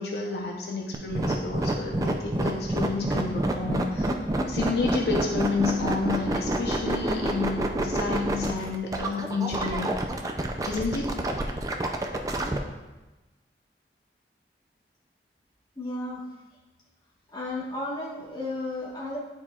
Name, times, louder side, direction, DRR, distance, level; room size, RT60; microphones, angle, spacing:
voice 1, 0.0-4.2 4.5-10.1 10.7-11.2, left 3 dB, 70° left, 0 dB, 0.7 m, -30 dB
sound 1, 0.9-12.6, right 1 dB, 20° right, 0.4 m, -28 dB
voice 2, 15.8-16.2 17.3-19.2, left 2 dB, 25° left, -5 dB, 1.3 m, -33 dB
9.7 x 4.3 x 2.4 m, 1.1 s
head